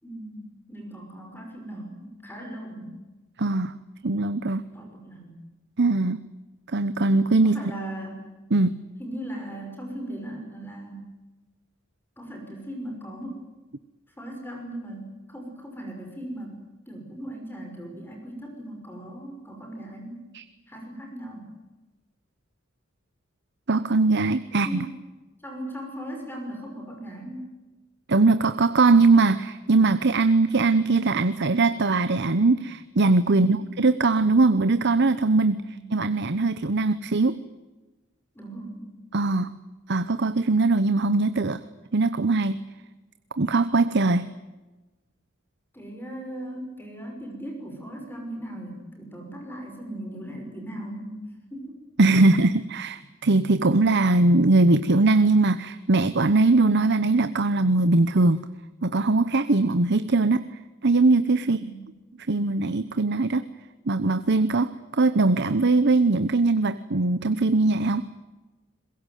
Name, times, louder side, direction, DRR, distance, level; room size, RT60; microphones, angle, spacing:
voice 1, 0.0-3.0 4.7-5.3 7.4-8.3 9.0-11.1 12.2-13.4 14.2-20.2 20.7-21.5 24.5-24.9 25.4-27.5 33.3-33.6 35.7-36.0 38.3-38.9 45.7-51.7 61.4-61.9, right 1 dB, 10° left, 2 dB, 5.9 m, -38 dB
voice 2, 3.4-3.7 4.0-4.6 5.8-6.2 6.7-7.5 8.5-8.8 20.3-20.4 23.7-24.7 28.1-35.6 35.9-37.4 39.1-39.5 39.9-41.6 41.9-42.6 43.3-44.3 52.0-58.4 58.8-60.4 60.8-61.6 62.3-63.4 63.9-68.0, right 3 dB, 55° right, 12 dB, 0.9 m, -21 dB
23.0 x 21.5 x 9.3 m, 1.1 s
head